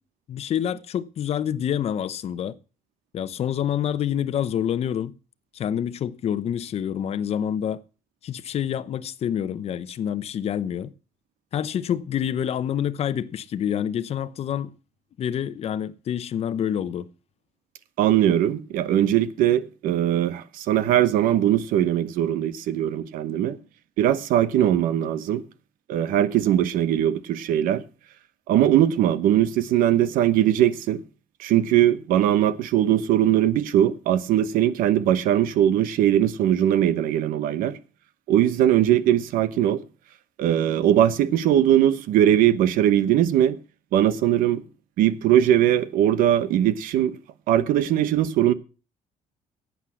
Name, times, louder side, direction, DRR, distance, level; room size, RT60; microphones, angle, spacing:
voice 1, 0.3-2.6 3.1-5.1 5.5-7.8 8.2-10.9 11.5-14.8 15.2-17.1, left 9 dB, 50° left, 0.8 m, -27 dB
voice 2, 18.0-23.6 24.0-25.4 25.9-27.8 28.5-31.0 31.4-37.8 38.3-39.8 40.4-43.6 43.9-44.6 45.0-47.2 47.5-48.5, right 11 dB, 85° right, 1.0 m, -20 dB
11.5 x 8.5 x 6.2 m
cardioid pair, 130°, 14 cm